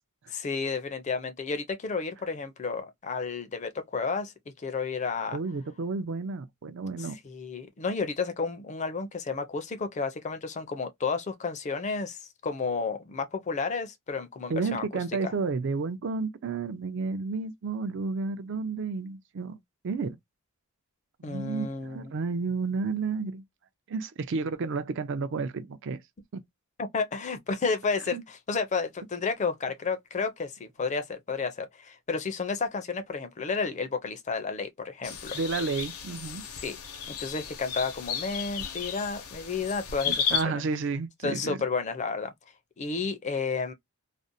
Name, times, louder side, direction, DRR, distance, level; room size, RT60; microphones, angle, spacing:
voice 1, 0.3-4.3 4.6-5.4 7.0-14.8 15.2-15.3 21.2-22.1 26.8-35.4 36.6-36.8 37.1-40.6 41.2-42.3 42.8-43.7, left 4 dB, 30° left, 0.4 m, -31 dB
voice 2, 5.3-7.2 14.5-19.6 19.8-20.2 21.2-23.4 23.9-26.0 26.3-26.4 28.1-28.2 35.3-36.4 40.1-41.6, right 4 dB, 55° right, 0.4 m, -31 dB
sound 1, 35.0-40.4, left 7 dB, 80° left, 0.7 m, -34 dB
2.5 x 2.0 x 2.6 m
head